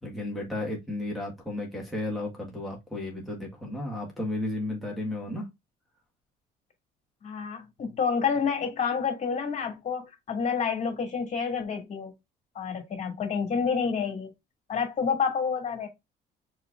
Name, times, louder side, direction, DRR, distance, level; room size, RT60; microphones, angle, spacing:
voice 1, 0.0-5.5, left 1 dB, ahead, 1.7 m, -33 dB
voice 2, 7.2-12.1 12.5-14.3 14.7-15.9, left 6 dB, 45° left, 2.4 m, -29 dB
4.3 x 4.2 x 2.4 m
cardioid pair, 110°, 17 cm